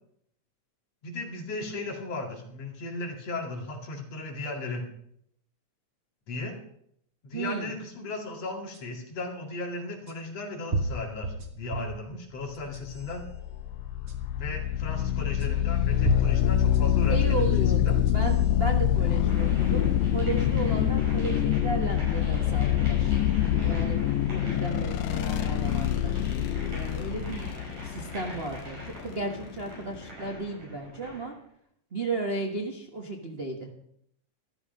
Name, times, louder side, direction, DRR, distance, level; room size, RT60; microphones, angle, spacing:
voice 1, 1.0-4.8 6.3-6.6 7.2-13.2 14.4-17.5 17.8-17.9, left 2 dB, 60° left, 1 dB, 3.3 m, -36 dB
voice 2, 7.3-7.7 17.1-31.3 31.9-33.7, right 3 dB, 90° right, 1 dB, 0.5 m, -34 dB
sound 1, 8.7-8.8 10.1-10.2 10.7-12.0 12.5-13.1 14.1-14.2 15.4-15.5 16.0-17.4 17.9-18.4, right 3 dB, 40° right, 0.9 m, -32 dB
sound 2, 12.8-30.1, left 11 dB, 80° left, 1.9 m, -26 dB
sound 3, 19.3-31.3, right 1 dB, 65° right, 7.6 m, -44 dB
13.0 x 12.5 x 5.3 m, 0.70 s
omnidirectional pair, 3.3 m